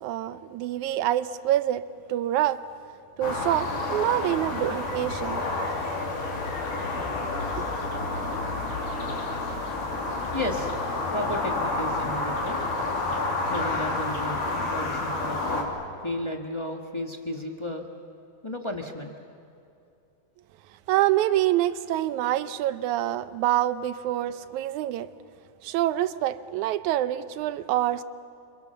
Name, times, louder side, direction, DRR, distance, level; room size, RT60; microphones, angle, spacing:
voice 1, 0.0-2.6 3.2-5.4 7.0-7.2 7.6-7.7 20.9-25.1 25.6-28.0, right 13 dB, 80° right, 2.1 m, -26 dB
sound 1, 3.2-15.6, left 2 dB, 85° left, 4.6 m, -29 dB
voice 2, 10.3-10.8 11.1-12.7 13.5-15.7 16.0-17.9 18.4-19.1, left 1 dB, 20° left, 0.7 m, -33 dB
29.5 x 26.5 x 6.9 m
omnidirectional pair, 3.5 m